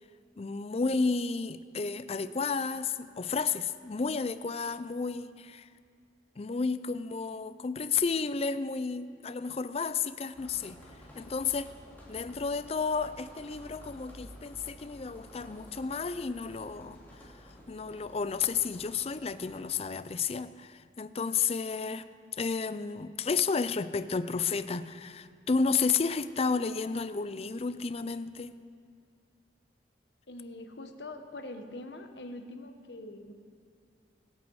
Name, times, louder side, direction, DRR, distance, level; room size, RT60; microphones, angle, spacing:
voice 1, 0.4-5.7 6.4-10.8 11.2-11.7 12.1-22.1 22.4-28.5, left 5 dB, 35° left, 14 dB, 0.4 m, -32 dB
sound 1, 10.3-19.8, equal, 10° left, 2.8 m, -52 dB
voice 2, 30.3-33.3, left 2 dB, 75° left, 6 dB, 1.2 m, -43 dB
25.0 x 8.3 x 4.8 m, 2.2 s
head